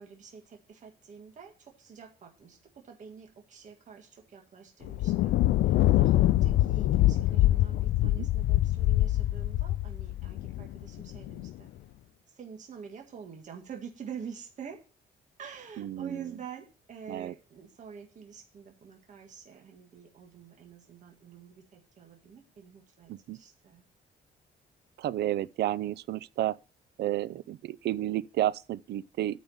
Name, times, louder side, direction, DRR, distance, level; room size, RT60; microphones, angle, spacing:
voice 1, 0.0-5.4 5.6-11.7 12.3-14.8 15.4-23.8, right 7 dB, 45° right, 1.9 m, -47 dB
Thunder, 4.8-11.5, left 15 dB, 85° left, 0.4 m, -25 dB
voice 2, 15.8-16.2 17.1-17.3 23.1-23.4 25.0-26.6 27.0-29.4, right 13 dB, 70° right, 0.5 m, -31 dB
8.9 x 5.2 x 7.3 m
cardioid pair, 155°, 18 cm